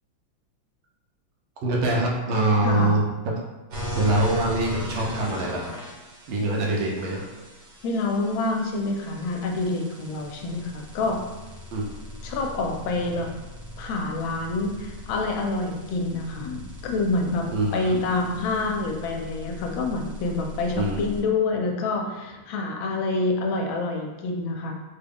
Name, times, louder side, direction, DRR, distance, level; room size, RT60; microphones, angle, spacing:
voice 1, 1.6-3.0 3.9-5.7 6.3-7.3 11.7-11.8 17.5-17.9 20.7-21.1, right 2 dB, 75° right, -2 dB, 1.3 m, -24 dB
sound 1, 3.7-21.2, left 1 dB, 55° right, 1.2 m, -38 dB
voice 2, 7.8-11.2 12.2-13.3 13.8-24.7, left 3 dB, 80° left, 2 dB, 1.3 m, -27 dB
3.7 x 2.3 x 3.4 m, 1.1 s
omnidirectional pair, 2.2 m